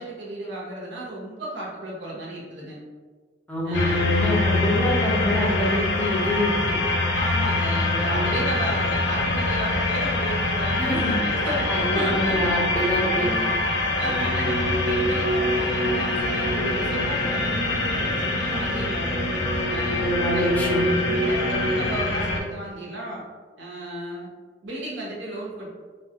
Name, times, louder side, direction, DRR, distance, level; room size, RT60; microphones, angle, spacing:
voice 1, 0.0-2.8 3.6-4.0 7.1-13.6 14.0-19.1 19.7-20.0 20.3-23.2 23.6-24.3 24.6-25.7, right 1 dB, 65° right, -5 dB, 0.8 m, -34 dB
voice 2, 3.5-6.5 8.0-8.3 10.8-11.2 11.7-13.3 20.0-20.8, equal, 10° left, -4 dB, 0.6 m, -25 dB
sound 1, 3.7-22.4, left 2 dB, 65° left, 0.5 m, -25 dB
sound 2, 14.1-22.0, right 1 dB, 30° right, 0.8 m, -29 dB
3.1 x 2.2 x 2.8 m, 1.4 s
head